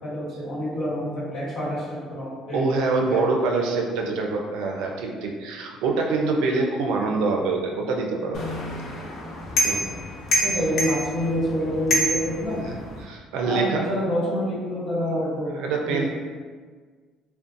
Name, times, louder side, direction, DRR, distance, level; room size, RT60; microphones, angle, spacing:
voice 1, 0.0-2.6 3.1-3.2 10.4-12.6 13.4-15.6 15.8-16.1, equal, 70° left, -9 dB, 1.2 m, -27 dB
voice 2, 2.5-8.4 9.6-9.8 12.6-13.9 15.5-16.1, right 3 dB, 85° right, 1 dB, 0.4 m, -25 dB
sound 1, 8.3-13.0, equal, 55° left, 0.5 m, -27 dB
2.5 x 2.1 x 2.5 m, 1.5 s
cardioid pair, 135°, 0 cm